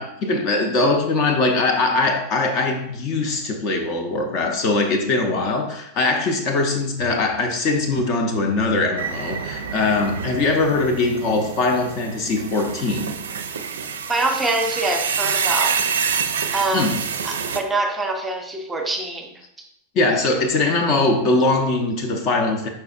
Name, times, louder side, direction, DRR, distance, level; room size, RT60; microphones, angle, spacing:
voice 1, 0.0-13.2 16.7-17.0 19.9-22.7, left 3 dB, 40° left, 4 dB, 0.6 m, -21 dB
sound 1, 9.0-17.6, right 6 dB, 65° right, 0.4 m, -27 dB
voice 2, 14.1-15.8 16.5-17.0 17.2-19.3, right 2 dB, 10° right, 3 dB, 0.7 m, -24 dB
4.9 x 4.4 x 2.4 m, 0.79 s
figure-of-eight pair, 90°, 0 cm